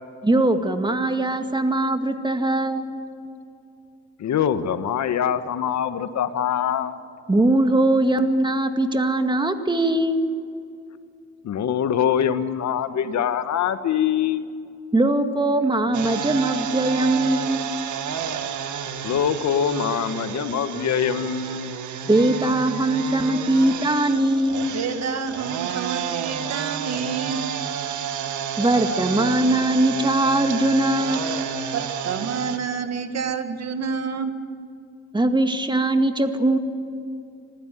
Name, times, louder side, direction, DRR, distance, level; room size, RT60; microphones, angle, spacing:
voice 1, 0.2-3.0 7.3-10.3 14.9-17.7 22.1-24.7 28.6-31.3 35.1-36.6, right 1 dB, 15° right, 7 dB, 2.1 m, -21 dB
voice 2, 4.2-6.9 11.4-14.4 19.0-21.7, left 8 dB, 65° left, 10 dB, 1.5 m, -23 dB
sound 1, 15.9-32.6, right 8 dB, 75° right, 1.8 m, -31 dB
voice 3, 24.7-27.4 31.7-34.4, right 6 dB, 60° right, 8 dB, 2.0 m, -28 dB
25.5 x 15.5 x 9.3 m, 2.5 s
cardioid pair, 90°, 30 cm